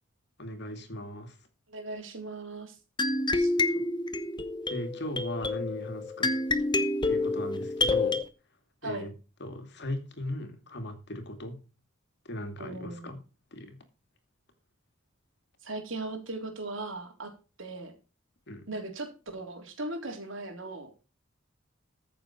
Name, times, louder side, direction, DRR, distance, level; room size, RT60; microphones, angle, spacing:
voice 1, 0.4-1.4 3.6-3.9 4.7-6.3 7.0-8.2 8.8-9.1 9.4-11.6 12.2-13.2 13.5-13.8 18.5-18.7, left 1 dB, 60° left, 2.5 m, -38 dB
voice 2, 1.7-2.8 3.3-3.5 8.8-9.0 12.6-13.2 15.6-17.3 17.6-17.9 18.7-20.9, right 2 dB, 80° right, 3.7 m, -38 dB
sound 1, 3.0-8.2, left 2 dB, 25° left, 1.1 m, -28 dB
14.5 x 7.0 x 4.5 m
head